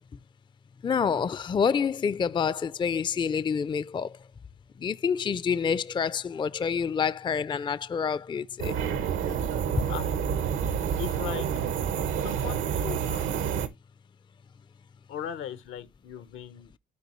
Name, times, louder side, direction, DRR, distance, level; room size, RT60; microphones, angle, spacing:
voice 1, 0.8-4.1 4.8-8.8, left 6 dB, 25° left, 0.4 m, -27 dB
sound 1, 8.6-13.7, right 8 dB, 85° right, 1.1 m, -28 dB
voice 2, 11.0-11.7 12.2-13.3 15.1-16.7, left 9 dB, 85° left, 1.0 m, -38 dB
12.5 x 4.7 x 3.0 m
cardioid pair, 90°, 20 cm